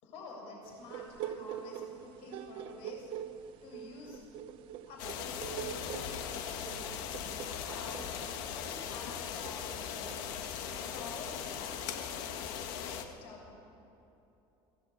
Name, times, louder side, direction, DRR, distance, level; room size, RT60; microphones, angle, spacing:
voice 1, 0.0-3.1 3.6-4.2 4.9-7.0 7.5-8.0 8.5-10.1 10.7-13.4, left 3 dB, 60° left, -1 dB, 7.2 m, -49 dB
sound 1, 0.6-11.8, right 10 dB, 50° right, 1.1 m, -45 dB
sound 2, 5.0-13.0, left 8 dB, 85° left, 1.8 m, -39 dB
25.0 x 17.0 x 8.6 m, 3.0 s
cardioid pair, 180°, 11 cm